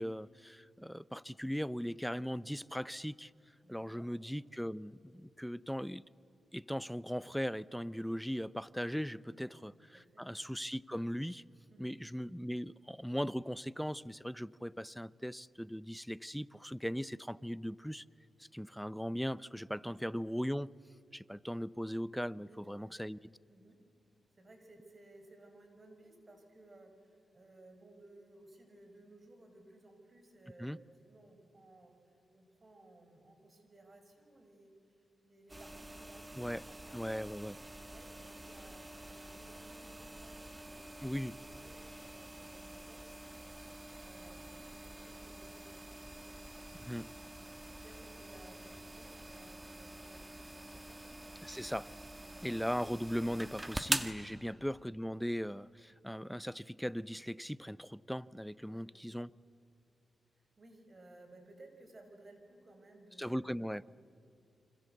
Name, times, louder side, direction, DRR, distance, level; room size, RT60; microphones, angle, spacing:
voice 1, 0.0-3.3 3.7-6.0 6.5-11.4 11.8-18.0 18.4-20.7 21.1-23.2 30.6-30.8 36.4-36.6 36.9-37.6 41.0-41.3 46.9-47.1 51.4-51.9 52.4-59.3 63.2-63.9, equal, ahead, 0.6 m, -39 dB
voice 2, 3.6-4.1 9.3-9.6 9.9-10.3 11.7-12.0 19.8-20.0 22.4-23.1 23.5-23.8 24.3-30.7 31.0-37.1 37.7-47.0 47.3-51.0 52.1-52.7 54.3-54.6 58.6-58.9 60.3-63.9, right 2 dB, 40° right, 5.9 m, -60 dB
sound 1, 35.5-54.1, right 1 dB, 15° right, 1.7 m, -45 dB
28.5 x 25.5 x 8.2 m
cardioid pair, 55°, 0 cm